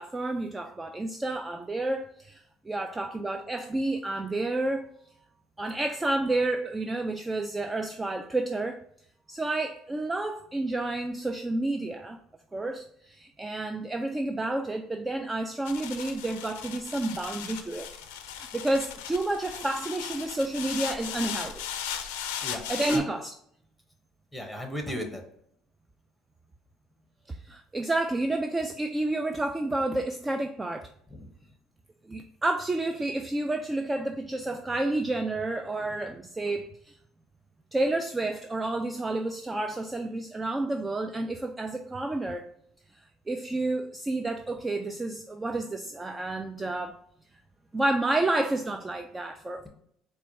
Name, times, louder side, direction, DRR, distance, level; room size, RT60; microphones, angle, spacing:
voice 1, 0.0-4.9 5.6-8.8 9.3-12.2 12.5-17.9 18.3-21.7 22.7-23.3 27.3-30.9 32.0-37.0 37.7-42.5 42.9-47.0 47.7-49.7, right 2 dB, 20° right, 0.3 m, -30 dB
sound 1, 15.6-23.0, left 9 dB, 85° left, 0.4 m, -37 dB
voice 2, 24.3-25.2 31.1-31.5, left 1 dB, ahead, 1.0 m, -36 dB
4.2 x 2.3 x 2.9 m
hypercardioid pair, 75°, 0 cm